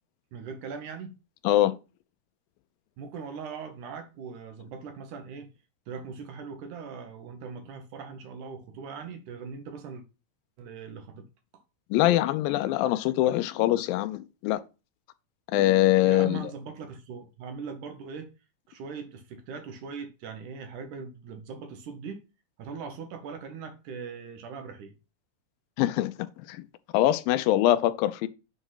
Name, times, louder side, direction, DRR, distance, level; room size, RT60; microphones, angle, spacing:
voice 1, 0.3-1.2 3.0-5.5 5.9-10.0 10.6-11.2 16.0-18.3 18.7-22.2 22.6-24.9, right 5 dB, 70° right, 2.3 m, -40 dB
voice 2, 1.4-1.7 11.9-14.6 15.5-16.5 25.8-26.6 26.9-28.3, left 14 dB, 85° left, 2.4 m, -23 dB
8.2 x 3.6 x 5.6 m
omnidirectional pair, 4.0 m